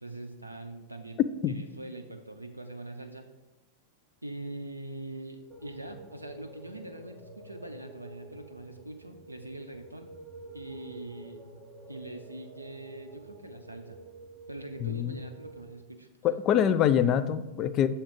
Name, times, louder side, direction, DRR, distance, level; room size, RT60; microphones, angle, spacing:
voice 1, 0.0-1.2 1.5-3.3 4.2-10.1 10.5-11.5 11.9-14.0 14.5-16.1 16.5-16.7, right 2 dB, 90° right, 5 dB, 0.4 m, -43 dB
sound 1, 5.5-15.6, right 2 dB, 15° left, 1.3 m, -49 dB
voice 2, 14.8-15.2 16.2-17.9, left 9 dB, 35° left, 12 dB, 0.3 m, -25 dB
6.9 x 2.8 x 5.0 m, 1.1 s
figure-of-eight pair, 95°, 0 cm